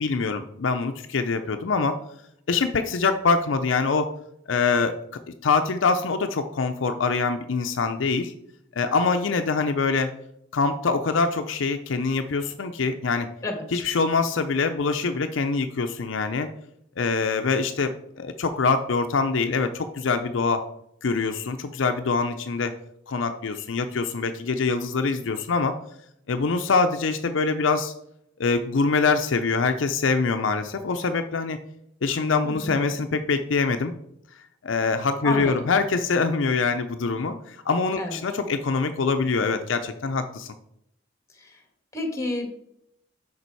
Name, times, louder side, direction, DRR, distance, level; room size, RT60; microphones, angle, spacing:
voice 1, 0.0-2.0 2.5-4.1 4.5-5.0 5.4-8.3 8.8-10.1 10.5-13.3 13.7-16.5 17.0-20.6 21.0-22.7 23.1-25.7 26.3-27.9 28.4-31.6 32.0-33.9 34.6-40.5, left 4 dB, 70° left, 7 dB, 0.5 m, -24 dB
voice 2, 13.4-13.8 32.4-32.8 35.2-35.7 38.0-38.2 41.3-41.6 41.9-42.5, left 2 dB, 15° left, 4 dB, 1.6 m, -30 dB
6.8 x 5.2 x 4.6 m, 0.75 s
head